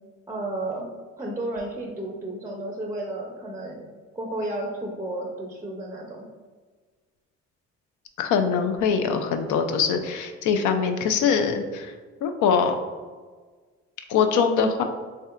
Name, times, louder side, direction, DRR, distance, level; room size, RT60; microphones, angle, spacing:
voice 1, 0.3-0.9 1.2-3.9 4.1-6.3, right 1 dB, 10° right, -1 dB, 0.4 m, -32 dB
voice 2, 8.2-11.9 12.2-12.8 14.1-14.8, left 6 dB, 80° left, 6 dB, 0.5 m, -23 dB
3.2 x 2.7 x 2.4 m, 1.4 s
cardioid pair, 90°, 30 cm